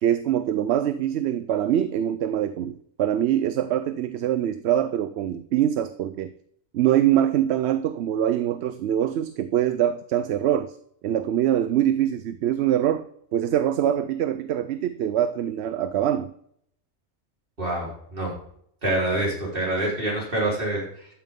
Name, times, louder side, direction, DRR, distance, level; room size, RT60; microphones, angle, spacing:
voice 1, 0.0-6.3 6.7-10.8 11.0-16.3, right 11 dB, 70° right, 13 dB, 0.8 m, -24 dB
voice 2, 17.6-18.3 18.8-21.1, right 1 dB, 50° right, -3 dB, 4.4 m, -26 dB
13.0 x 9.2 x 3.7 m, 0.68 s
omnidirectional pair, 1.2 m